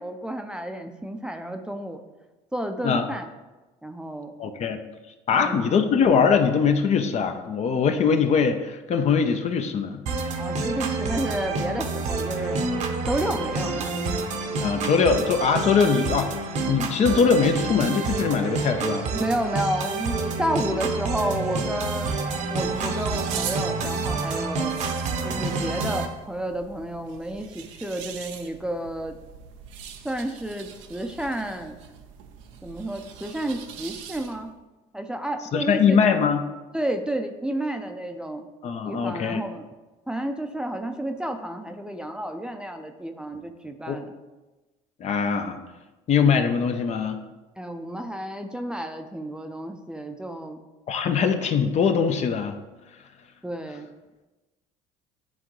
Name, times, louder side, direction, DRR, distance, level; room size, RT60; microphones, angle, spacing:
voice 1, 0.0-2.0 2.5-3.3 3.8-4.3 5.3-5.6 10.4-12.6 13.0-13.9 19.1-22.2 22.5-24.7 25.2-29.2 30.0-31.8 32.6-34.5 34.9-36.0 36.7-38.5 38.8-39.7 40.1-44.1 47.6-50.6 53.4-53.9, right 1 dB, 5° right, 5 dB, 0.6 m, -31 dB
voice 2, 4.4-4.8 5.3-10.0 14.6-19.1 35.5-36.4 38.6-39.4 43.9-44.0 45.0-45.6 46.1-47.2 50.9-52.6, left 6 dB, 45° left, 7 dB, 0.7 m, -22 dB
sound 1, 10.1-26.1, right 3 dB, 50° right, 0.9 m, -28 dB
sound 2, 21.9-34.6, right 8 dB, 85° right, 0.6 m, -42 dB
10.5 x 3.7 x 3.1 m, 1.1 s
supercardioid pair, 75°, 15 cm